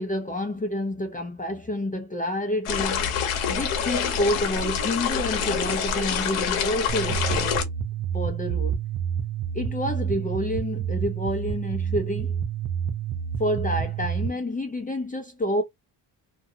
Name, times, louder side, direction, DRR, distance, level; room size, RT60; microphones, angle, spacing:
voice 1, 0.0-3.2 3.5-7.7 8.1-8.8 9.5-12.4 13.4-15.6, left 1 dB, 15° left, 0.6 m, -29 dB
sound 1, 2.6-7.6, left 7 dB, 80° left, 1.0 m, -26 dB
sound 2, 6.9-14.3, right 8 dB, 40° right, 0.5 m, -29 dB
2.5 x 2.2 x 2.7 m
cardioid pair, 80°, 48 cm